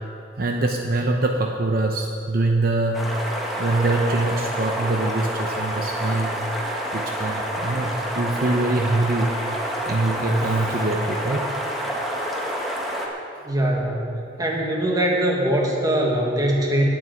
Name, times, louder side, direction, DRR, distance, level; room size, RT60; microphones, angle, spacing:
voice 1, 0.4-3.1 3.6-6.4 6.9-9.3 9.9-11.5, right 2 dB, 55° right, 2 dB, 0.8 m, -23 dB
sound 1, 2.9-13.1, equal, ahead, 1.6 m, -28 dB
voice 2, 13.5-16.8, right 1 dB, 20° right, -1 dB, 1.9 m, -22 dB
9.4 x 8.8 x 9.5 m, 2.6 s
head